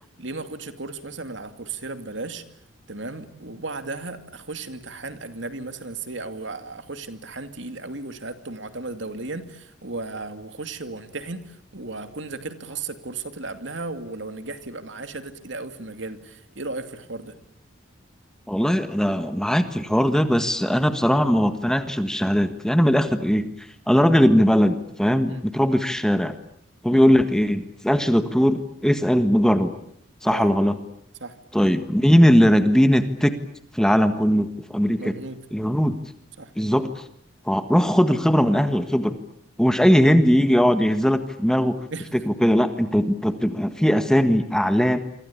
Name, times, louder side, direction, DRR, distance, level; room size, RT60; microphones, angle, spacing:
voice 1, 0.2-2.4 2.9-17.3 25.3-25.4 26.9-27.1 30.3-30.6 31.2-31.4 35.0-35.4 36.4-36.5 41.9-42.1, right 3 dB, 70° right, 9 dB, 2.5 m, -35 dB
voice 2, 18.5-23.5 23.9-26.3 26.8-29.7 30.2-30.8 31.5-33.3 33.7-35.1 35.5-36.0 36.6-37.0 37.4-39.2 39.6-41.8 42.1-45.0, equal, 5° left, 9 dB, 1.5 m, -19 dB
28.0 x 25.0 x 8.5 m, 0.72 s
head